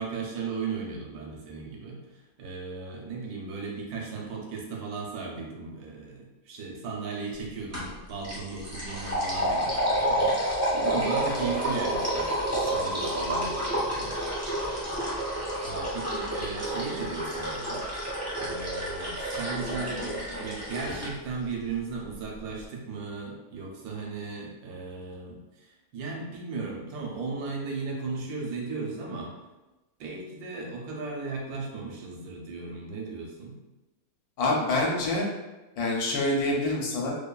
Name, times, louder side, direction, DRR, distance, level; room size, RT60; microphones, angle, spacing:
voice 1, 0.0-14.1 15.6-17.8 18.4-29.3 30.0-33.6, right 4 dB, 75° right, -1 dB, 1.0 m, -36 dB
sound 1, 7.7-7.9 8.2-21.1, right 1 dB, 20° right, 0.4 m, -29 dB
voice 2, 34.4-35.2 35.8-37.1, left 2 dB, 75° left, -1 dB, 1.1 m, -26 dB
2.7 x 2.2 x 2.2 m, 1.1 s
omnidirectional pair, 1.6 m